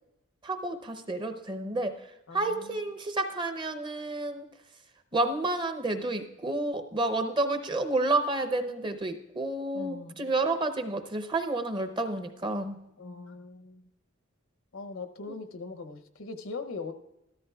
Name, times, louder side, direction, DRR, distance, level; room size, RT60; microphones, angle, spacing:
voice 1, 0.4-4.5 5.1-12.8, right 2 dB, 25° right, 8 dB, 0.7 m, -30 dB
voice 2, 2.3-2.9 9.7-10.3 13.0-13.9 14.7-16.9, left 3 dB, 70° left, 9 dB, 0.8 m, -41 dB
14.0 x 13.0 x 2.4 m, 0.90 s
head